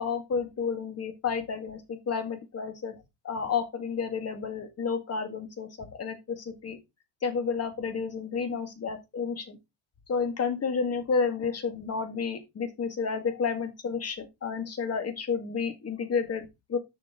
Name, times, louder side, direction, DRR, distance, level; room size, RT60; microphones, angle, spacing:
voice 1, 0.0-6.8 7.2-9.6 10.1-16.8, left 5 dB, 30° left, 2.0 m, -31 dB
7.3 x 6.0 x 3.7 m
cardioid pair, 120°, 47 cm